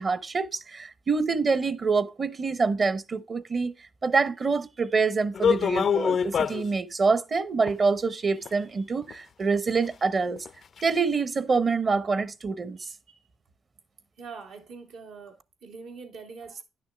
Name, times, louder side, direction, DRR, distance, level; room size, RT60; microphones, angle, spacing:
voice 1, 0.0-3.7 4.0-10.5 10.8-12.9, right 4 dB, 40° right, 0.8 m, -26 dB
sound 1, 5.3-6.7 7.7-7.8 8.5-8.6 9.0-9.1 9.7-9.8 10.4-10.5 10.8-10.9, left 7 dB, 55° left, 0.3 m, -24 dB
voice 2, 14.2-16.6, right 5 dB, 85° right, 2.1 m, -43 dB
10.5 x 6.4 x 3.4 m
cardioid pair, 90°, 0 cm